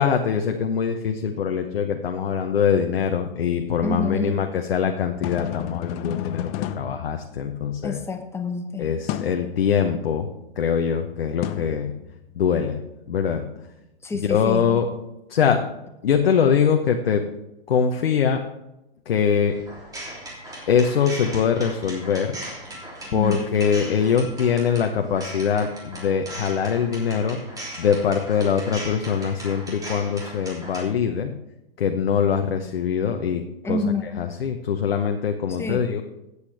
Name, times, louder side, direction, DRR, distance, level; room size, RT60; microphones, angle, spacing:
voice 1, 0.0-8.0 8.8-10.3 10.6-11.9 12.3-12.8 13.1-13.4 14.1-14.9 15.3-15.6 16.0-17.2 17.7-18.4 19.1-19.5 20.7-22.4 23.1-27.4 27.8-31.3 31.8-33.4 33.7-33.8 34.2-36.0, left 7 dB, 70° left, 5 dB, 1.0 m, -23 dB
voice 2, 3.8-4.4 7.8-8.9 14.0-15.0 23.1-23.4 33.6-34.1 35.5-35.9, left 3 dB, 10° left, 6 dB, 1.0 m, -28 dB
sound 1, 5.0-7.9 9.1-9.5 11.4-12.5, left 12 dB, 25° left, 0.4 m, -32 dB
sound 2, 19.5-30.8, right 1 dB, 10° right, 3.0 m, -38 dB
15.5 x 8.3 x 3.4 m, 0.92 s
hypercardioid pair, 120°, 30 cm